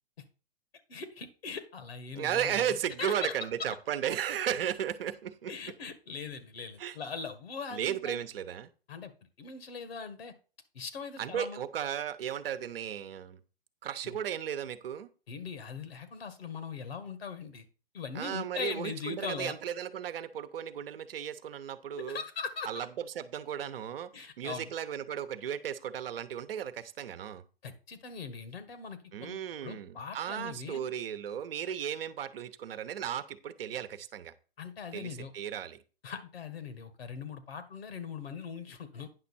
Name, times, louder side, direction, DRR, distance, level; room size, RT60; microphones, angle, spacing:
voice 1, 0.9-3.4 5.5-8.2 8.9-9.1 9.4-10.3 10.7-11.7 14.0-14.2 15.3-17.7 17.9-19.5 22.0-22.7 24.1-24.7 27.6-30.9 34.6-35.3 36.0-39.3, left 5 dB, 75° left, 1.7 m, -41 dB
voice 2, 2.1-5.5 6.8-7.0 7.7-8.7 11.2-13.4 13.8-15.1 18.1-22.2 22.7-27.4 29.1-34.3 34.9-35.8, right 9 dB, 65° right, 0.9 m, -35 dB
9.6 x 6.0 x 4.2 m
hypercardioid pair, 120°, 31 cm